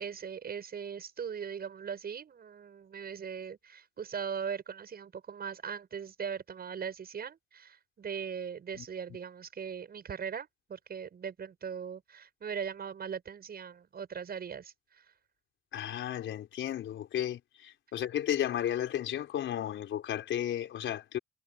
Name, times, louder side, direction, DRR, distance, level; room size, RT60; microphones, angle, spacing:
voice 1, 0.0-15.0, right 7 dB, 50° right, 7.1 m, -40 dB
voice 2, 15.7-21.2, left 11 dB, 75° left, 4.3 m, -33 dB
cardioid pair, 90°, 20 cm